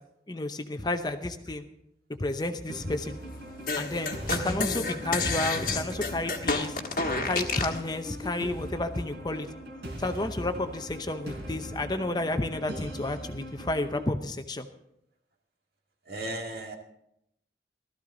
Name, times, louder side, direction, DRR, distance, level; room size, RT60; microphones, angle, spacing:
voice 1, 0.3-1.6 2.2-3.2 3.7-6.8 7.2-9.5 10.0-14.7, left 2 dB, 25° left, 8 dB, 0.7 m, -31 dB
sound 1, 2.7-14.1, right 1 dB, 80° right, 3.8 m, -40 dB
sound 2, 3.7-7.8, left 3 dB, 50° left, 1.4 m, -29 dB
sound 3, 4.0-8.0, right 2 dB, 35° right, 1.5 m, -45 dB
voice 2, 16.1-16.8, right 1 dB, 60° right, 2 dB, 2.0 m, -36 dB
16.5 x 13.5 x 3.9 m, 0.79 s
head